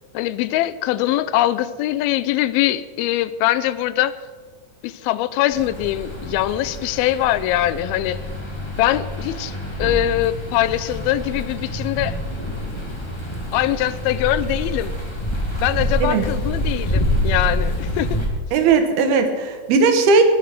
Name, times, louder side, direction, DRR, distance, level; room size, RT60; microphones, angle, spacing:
voice 1, 0.1-4.2 4.8-8.2 8.8-12.2 13.5-14.9 15.6-18.2, left 13 dB, 85° left, 16 dB, 2.5 m, -22 dB
sound 1, 5.5-18.3, equal, 10° left, 1.3 m, -27 dB
voice 2, 18.5-20.2, right 4 dB, 90° right, 7 dB, 3.2 m, -17 dB
20.0 x 6.8 x 5.9 m, 1.4 s
omnidirectional pair, 4.3 m